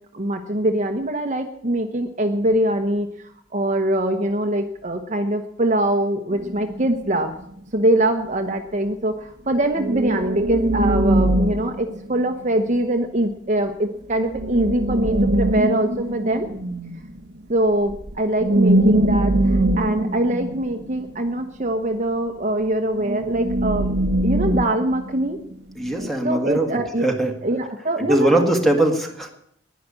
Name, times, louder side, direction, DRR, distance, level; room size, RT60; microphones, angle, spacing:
voice 1, 0.1-3.1 3.5-7.3 7.7-16.5 17.5-23.9 24.2-25.4 26.2-27.1 27.4-28.4, right 1 dB, 40° right, 6 dB, 1.0 m, -23 dB
sound 1, 6.3-7.5 9.7-12.7 14.2-17.2 17.9-18.1 18.4-21.4 22.9-25.5 25.9-26.1, right 1 dB, 60° right, 1.0 m, -22 dB
voice 2, 25.8-26.7 27.0-27.3 28.0-29.3, right 1 dB, ahead, 4 dB, 1.9 m, -20 dB
11.0 x 10.5 x 9.8 m, 0.72 s
head